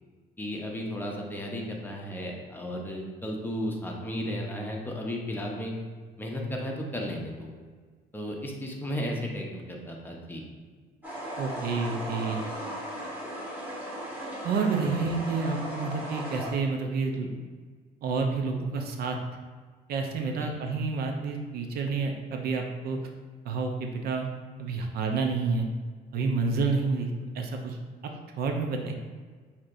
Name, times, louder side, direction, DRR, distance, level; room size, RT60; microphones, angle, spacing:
voice 1, 0.4-5.7 6.2-7.5 8.1-10.4 14.8-15.0 20.4-20.5, equal, 10° left, -1 dB, 0.7 m, -34 dB
sound 1, 11.0-16.5, equal, 10° right, 1.4 m, -37 dB
voice 2, 11.4-12.5 14.4-17.3 18.0-19.2 19.9-23.0 23.4-24.3 24.6-25.7 26.1-27.8 28.4-28.9, right 4 dB, 65° right, 3 dB, 0.6 m, -29 dB
6.3 x 2.8 x 2.5 m, 1.5 s
cardioid pair, 110°, 17 cm